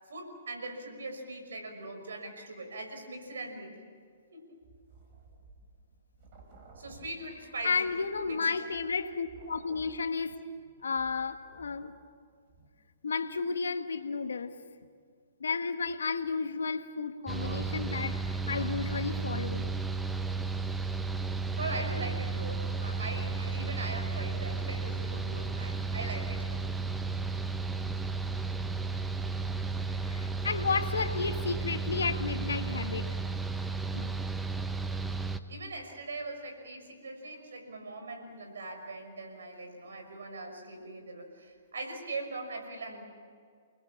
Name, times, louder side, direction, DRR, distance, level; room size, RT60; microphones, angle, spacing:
voice 1, 0.1-3.8 4.3-4.5 6.8-7.8 8.3-8.4 17.4-17.7 21.5-26.5 35.5-43.0, right 2 dB, 80° right, 5 dB, 5.9 m, -41 dB
sound 1, 4.6-12.1 12.5-12.7, right 4 dB, 45° right, 5.8 m, -56 dB
voice 2, 7.6-10.4 10.8-11.9 13.0-14.5 15.4-19.7 30.1-33.2 33.9-34.2, left 5 dB, 80° left, 7 dB, 1.4 m, -32 dB
Mechanical fan, 17.3-35.4, right 4 dB, 5° right, 1.0 m, -33 dB
29.5 x 20.5 x 7.3 m, 2.1 s
hypercardioid pair, 130°, 0 cm